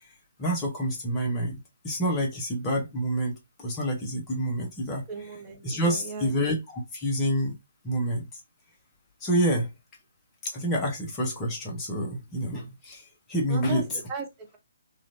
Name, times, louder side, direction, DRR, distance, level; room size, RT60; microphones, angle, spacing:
voice 1, 0.4-5.0 5.6-7.6 7.8-8.3 9.2-9.7 10.4-13.0 13.3-13.8, equal, 15° left, 1.0 m, -28 dB
voice 2, 5.1-6.3 13.5-14.3, right 4 dB, 20° right, 0.6 m, -37 dB
3.1 x 2.6 x 2.6 m
figure-of-eight pair, 135°, 0 cm